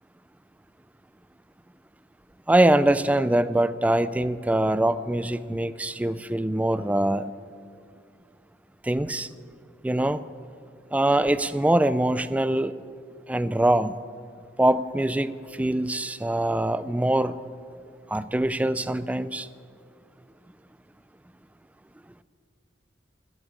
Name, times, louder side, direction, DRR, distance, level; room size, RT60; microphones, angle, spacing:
voice 1, 2.5-7.3 8.8-9.3 9.8-10.2 10.9-12.8 13.3-14.0 14.6-17.4 18.1-19.5, right 1 dB, 10° right, 15 dB, 0.3 m, -23 dB
13.0 x 8.5 x 8.9 m, 2.4 s
head